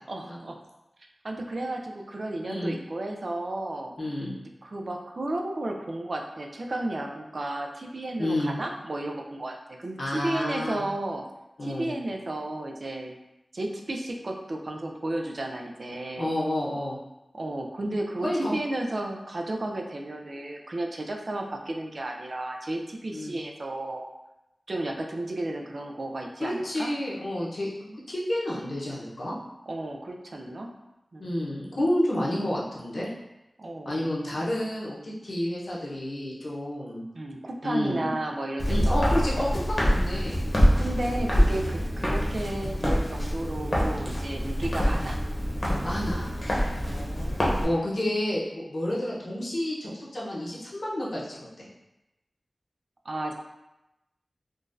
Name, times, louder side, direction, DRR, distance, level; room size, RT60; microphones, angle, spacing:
voice 1, 0.1-0.6 1.2-3.9 4.6-11.2 11.6-13.1 13.5-16.3 17.3-24.1 24.7-26.9 29.7-30.7 31.1-31.4 33.6-34.1 37.1-39.1 40.8-45.2 46.8-47.8 53.1-53.3, right 1 dB, 60° right, 2 dB, 0.4 m, -33 dB
voice 2, 2.4-2.7 4.0-4.3 8.2-8.5 10.0-10.8 11.6-11.9 16.2-17.0 18.2-18.5 23.1-23.4 26.4-29.3 31.2-33.1 33.8-37.0 37.6-38.1 38.7-40.4 45.8-46.4 47.6-51.7, left 1 dB, 70° left, -6 dB, 0.9 m, -30 dB
Walk footsteps, 38.6-47.6, equal, 35° left, 0.9 m, -25 dB
3.7 x 2.4 x 2.6 m, 0.95 s
wide cardioid pair, 65°, 0 cm